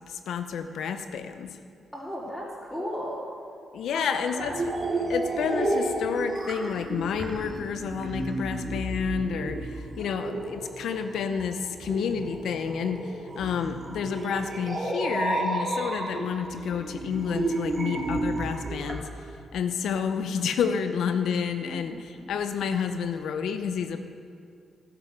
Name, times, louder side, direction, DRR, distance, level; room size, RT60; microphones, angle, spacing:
voice 1, 0.1-1.6 3.7-4.5 5.1-19.1 19.5-24.0, left 6 dB, 80° left, 8 dB, 0.8 m, -30 dB
voice 2, 1.9-3.2 3.9-4.7 10.0-10.3 21.6-22.0, equal, 10° left, -6 dB, 4.2 m, -36 dB
sound 1, 4.4-19.0, right 2 dB, 35° right, 2.6 m, -32 dB
12.0 x 10.5 x 6.7 m, 2.3 s
cardioid pair, 75°, 0 cm